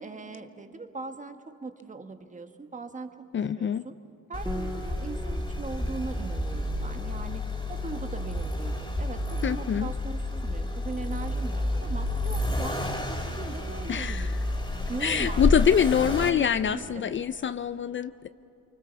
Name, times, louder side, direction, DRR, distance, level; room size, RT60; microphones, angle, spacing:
voice 1, 0.0-3.1 3.6-4.0 4.3-14.4 14.9-15.5 15.7-17.1, right 3 dB, 25° right, 7 dB, 1.6 m, -40 dB
voice 2, 3.3-3.8 9.4-9.9 13.9-14.3 15.0-18.3, left 8 dB, 40° left, 13 dB, 0.5 m, -25 dB
Accelerating revving vroom, 4.3-16.3, left 1 dB, 15° left, 3.5 m, -30 dB
Piano, 4.5-13.8, equal, 10° right, 1.2 m, -46 dB
24.5 x 24.5 x 7.0 m, 2.9 s
cardioid pair, 90°, 30 cm